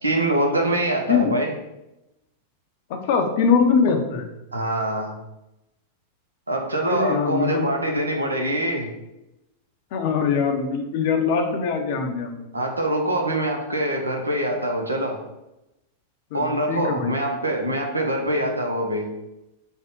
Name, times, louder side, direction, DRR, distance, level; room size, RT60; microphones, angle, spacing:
voice 1, 0.0-1.5 4.5-5.2 6.5-8.9 12.5-15.2 16.3-19.1, right 1 dB, 85° right, 2 dB, 0.6 m, -24 dB
voice 2, 2.9-4.3 6.8-8.1 9.9-12.4 16.3-17.2 18.4-18.5, left 6 dB, 55° left, 5 dB, 0.5 m, -23 dB
3.6 x 2.1 x 3.7 m, 0.94 s
figure-of-eight pair, 95°, 0 cm